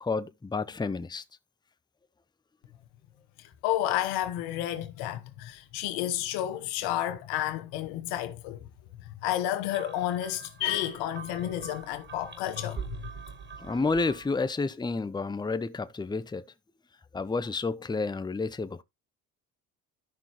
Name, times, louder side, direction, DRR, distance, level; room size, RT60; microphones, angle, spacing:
voice 1, 0.0-1.2 13.6-16.4 17.1-18.8, left 3 dB, 10° left, 0.7 m, -30 dB
voice 2, 3.4-8.7 9.0-13.0, left 13 dB, 85° left, 1.2 m, -31 dB
sound 1, 9.7-14.5, right 6 dB, 30° right, 1.4 m, -44 dB
12.5 x 5.5 x 3.0 m
supercardioid pair, 70°, 39 cm